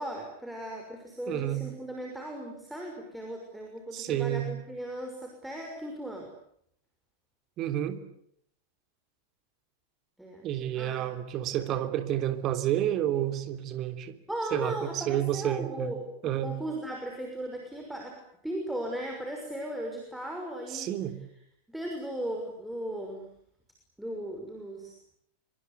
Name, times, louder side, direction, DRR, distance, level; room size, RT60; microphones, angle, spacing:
voice 1, 0.0-6.3 10.2-10.5 10.7-11.2 14.3-21.0 21.7-23.3 24.0-24.9, right 1 dB, 5° right, 1 dB, 6.1 m, -37 dB
voice 2, 1.3-1.6 3.9-4.5 7.6-8.0 10.4-14.1 14.5-15.9 16.2-16.5 20.7-21.2, right 12 dB, 35° right, 9 dB, 3.0 m, -30 dB
27.0 x 24.5 x 8.5 m, 0.71 s
figure-of-eight pair, 90°, 0 cm